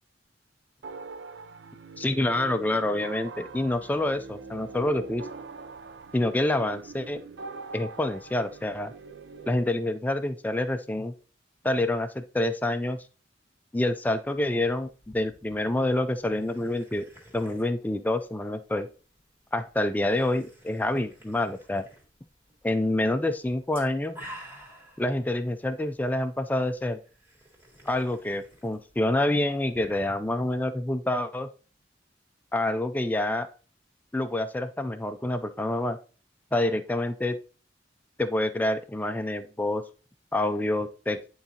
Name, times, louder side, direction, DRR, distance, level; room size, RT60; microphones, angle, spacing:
sound 1, 0.8-9.6, right 4 dB, 85° right, 0.5 m, -43 dB
voice 1, 2.0-5.3 6.1-7.2 7.7-8.9 9.5-11.1 11.6-13.0 13.7-14.9 15.1-17.1 17.3-18.9 19.5-21.9 22.6-24.2 25.0-27.0 27.9-31.5 32.5-33.5 34.1-36.0 36.5-37.4 38.2-39.8 40.3-41.2, left 1 dB, 10° left, 8 dB, 0.4 m, -27 dB
sound 2, 14.3-30.6, equal, 10° right, 1.9 m, -52 dB
10.5 x 3.9 x 2.8 m, 0.38 s
head